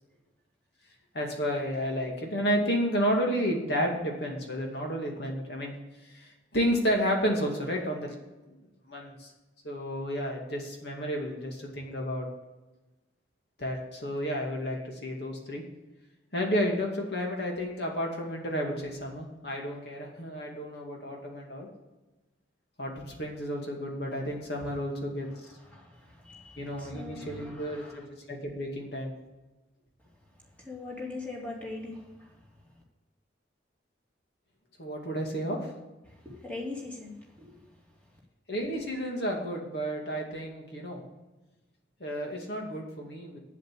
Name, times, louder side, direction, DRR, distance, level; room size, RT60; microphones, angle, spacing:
voice 1, 1.1-5.8 6.0-8.1 8.9-9.3 9.6-12.3 13.6-15.6 16.3-21.7 22.8-25.3 26.6-29.1 34.8-35.7 38.5-41.0 42.0-43.4, equal, 60° left, 0 dB, 2.3 m, -31 dB
voice 2, 25.2-28.1 30.3-32.5 36.1-37.7, left 2 dB, 10° left, -3 dB, 2.9 m, -42 dB
8.5 x 8.0 x 8.3 m, 1.1 s
head